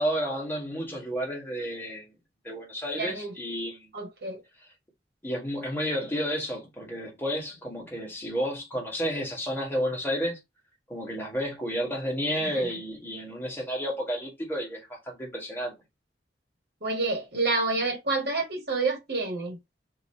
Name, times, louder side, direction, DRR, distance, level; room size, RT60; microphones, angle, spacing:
voice 1, 0.0-2.1 2.4-3.9 5.2-10.4 10.9-15.7, equal, 10° left, 1.5 m, -31 dB
voice 2, 3.0-3.3 3.9-4.4 12.5-12.7 16.8-19.6, right 3 dB, 60° right, 1.4 m, -28 dB
2.9 x 2.8 x 4.2 m
head